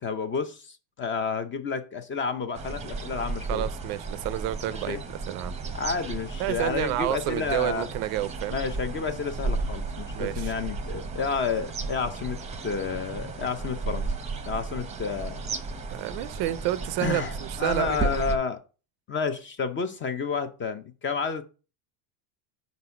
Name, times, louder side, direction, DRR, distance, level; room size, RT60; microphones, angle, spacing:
voice 1, 0.0-3.6 4.7-5.0 5.7-7.9 8.5-14.1 14.4-15.6 17.0-18.6 19.1-21.4, left 5 dB, 25° left, 0.5 m, -30 dB
sound 1, 2.5-18.4, right 3 dB, 15° right, 0.7 m, -34 dB
voice 2, 3.5-5.5 6.4-8.6 10.2-10.5 15.9-18.1, right 14 dB, 50° right, 0.5 m, -30 dB
5.2 x 4.0 x 5.6 m
supercardioid pair, 135°, 48 cm